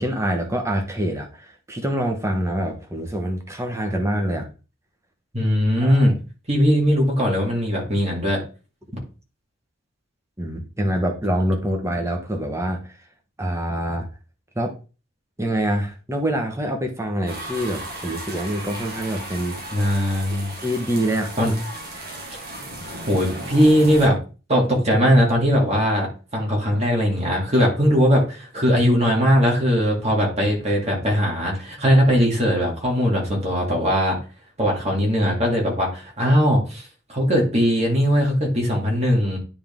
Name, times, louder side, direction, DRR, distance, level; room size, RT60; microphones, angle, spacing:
voice 1, 0.0-4.5 5.8-6.0 10.4-13.0 13.4-14.1 14.5-14.7 15.4-19.6 20.6-21.5, right 1 dB, 15° right, 3 dB, 1.2 m, -25 dB
voice 2, 5.3-6.1 6.5-8.4 19.7-20.5 21.4-21.5 22.3-22.4 23.1-24.2 24.5-34.2 34.6-39.4, equal, 30° right, -1 dB, 2.3 m, -19 dB
sound 1, 17.3-24.1, right 1 dB, 50° right, 1.9 m, -35 dB
9.6 x 3.7 x 3.7 m, 0.34 s
head